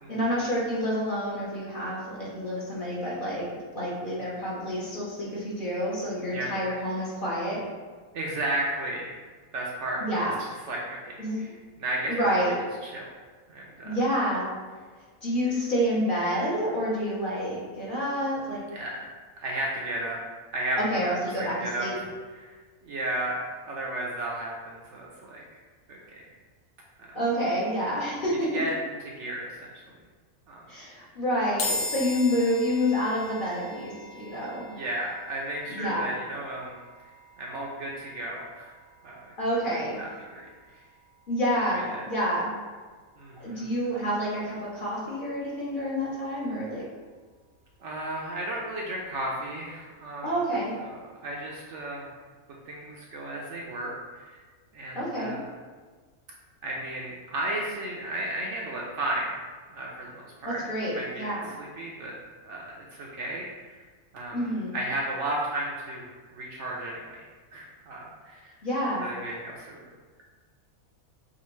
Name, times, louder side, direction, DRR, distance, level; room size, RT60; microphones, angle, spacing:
voice 1, 0.1-7.6 10.0-10.3 11.2-11.5 12.1-12.5 13.8-14.5 15.2-18.6 20.8-21.9 27.1-28.5 30.7-34.8 35.7-36.1 39.4-40.0 41.3-42.6 43.4-46.9 50.2-50.8 54.9-55.4 60.4-61.5 64.3-64.8 68.6-69.1, equal, 45° left, -7 dB, 0.9 m, -28 dB
voice 2, 8.1-9.1 9.5-10.0 10.7-11.5 11.8-12.5 12.8-13.0 13.5-14.0 18.7-19.1 19.4-20.2 20.5-21.1 21.4-21.9 22.4-22.5 22.8-23.4 23.6-25.4 25.9-26.3 27.0-27.2 28.5-28.7 29.2-29.7 30.5-30.6 34.7-36.8 37.4-38.7 39.0-39.2 39.7-40.5 40.7-40.8 41.7-42.0 43.2-43.9 47.8-50.3 50.8-52.1 52.7-54.4 54.7-55.5 56.6-59.4 59.7-60.6 60.9-61.2 61.6-62.1 62.4-63.8 64.1-67.2 67.5-68.5 69.0-69.8, right 1 dB, 65° right, -2 dB, 0.8 m, -34 dB
sound 1, 31.6-44.9, left 2 dB, 85° left, 1.2 m, -41 dB
5.0 x 2.4 x 3.0 m, 1.5 s
omnidirectional pair, 1.5 m